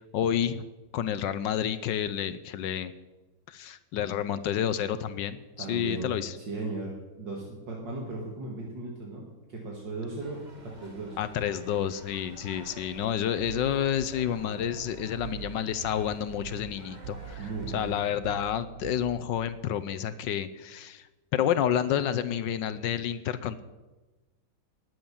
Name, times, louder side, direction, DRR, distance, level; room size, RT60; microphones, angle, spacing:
voice 1, 0.1-0.7 0.9-2.9 3.5-6.4 11.2-21.1 21.3-23.6, left 9 dB, 70° left, 13 dB, 1.3 m, -29 dB
voice 2, 5.6-6.1 6.4-11.2 17.4-18.0, right 3 dB, 65° right, -1 dB, 2.6 m, -37 dB
sound 1, 10.2-18.1, right 1 dB, 25° right, 1.6 m, -49 dB
sound 2, 13.3-19.4, right 10 dB, 80° right, 1.6 m, -43 dB
19.5 x 7.8 x 7.2 m, 1.2 s
omnidirectional pair, 2.2 m